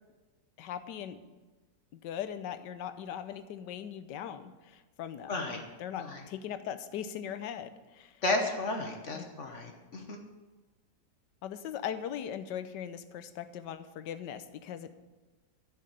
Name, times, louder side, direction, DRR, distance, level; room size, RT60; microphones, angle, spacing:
voice 1, 0.6-1.2 2.0-8.2 9.1-9.3 11.4-14.9, left 9 dB, 75° left, 11 dB, 1.4 m, -40 dB
voice 2, 5.3-5.6 5.9-6.2 8.2-10.2, left 2 dB, 45° left, 3 dB, 1.3 m, -33 dB
10.5 x 6.5 x 8.8 m, 1.2 s
omnidirectional pair, 1.9 m